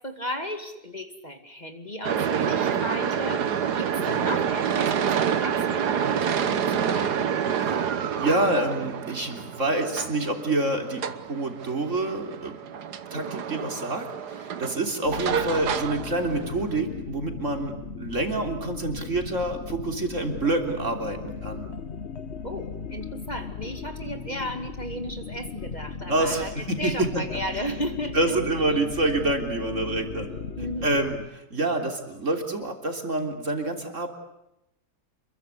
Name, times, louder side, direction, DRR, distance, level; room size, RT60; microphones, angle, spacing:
voice 1, 0.0-7.4 22.4-28.6 30.6-31.0, equal, 25° left, 6 dB, 2.4 m, -35 dB
sound 1, 2.0-16.8, right 7 dB, 65° right, 1.8 m, -28 dB
voice 2, 4.0-4.3 7.6-7.8 8.2-12.6 13.1-21.7 26.1-27.2 28.1-30.3 30.8-31.2 31.5-34.1, right 2 dB, 40° right, 4 dB, 3.8 m, -27 dB
sound 2, 15.0-31.3, left 5 dB, 40° left, 1.5 m, -37 dB
28.5 x 22.5 x 8.3 m, 0.89 s
omnidirectional pair, 1.9 m